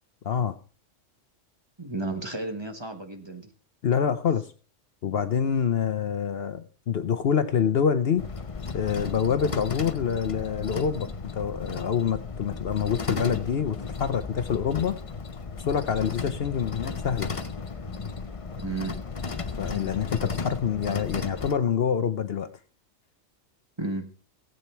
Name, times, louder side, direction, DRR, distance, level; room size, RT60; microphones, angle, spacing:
voice 1, 0.2-0.5 3.8-4.5 5.0-8.3 8.7-11.1 11.3-15.0 15.6-17.3 19.6-22.5, left 7 dB, 60° left, 11 dB, 0.9 m, -26 dB
voice 2, 1.8-3.5 18.6-19.0 23.8-24.1, right 2 dB, 20° right, 6 dB, 1.3 m, -33 dB
sound 1, 8.2-21.5, left 4 dB, 30° left, 0.7 m, -34 dB
18.0 x 7.9 x 4.5 m, 0.39 s
omnidirectional pair, 1.3 m